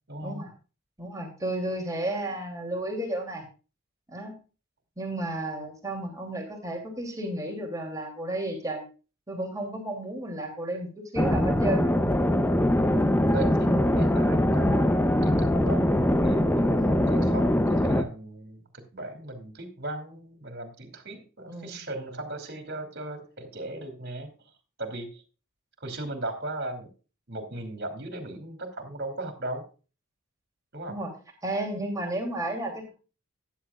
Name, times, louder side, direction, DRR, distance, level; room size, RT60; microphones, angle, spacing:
voice 1, 0.1-0.5 13.3-24.3 24.8-25.2 25.8-26.9 27.3-29.7 30.7-31.0, right 2 dB, 50° right, 7 dB, 2.7 m, -37 dB
voice 2, 1.0-3.4 4.1-4.4 5.0-8.9 9.3-11.9 21.5-21.8 30.9-31.1 31.4-32.9, right 1 dB, 15° right, 2 dB, 2.9 m, -32 dB
sound 1, 11.2-18.0, left 1 dB, 10° left, 0.6 m, -22 dB
14.0 x 10.0 x 2.4 m, 0.34 s
head